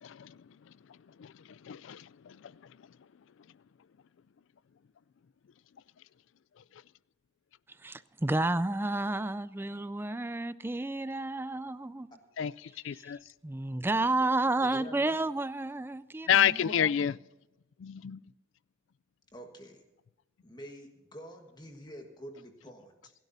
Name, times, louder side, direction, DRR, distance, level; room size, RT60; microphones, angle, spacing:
voice 1, 0.0-2.7 12.4-13.2 16.3-17.2 17.8-18.2, left 9 dB, 65° left, 0.3 m, -30 dB
voice 2, 7.7-12.1 13.0-16.7, right 2 dB, 10° right, 0.3 m, -31 dB
voice 3, 14.6-15.2 19.3-19.8 20.4-23.1, equal, 20° left, 1.4 m, -47 dB
27.5 x 12.0 x 2.7 m
head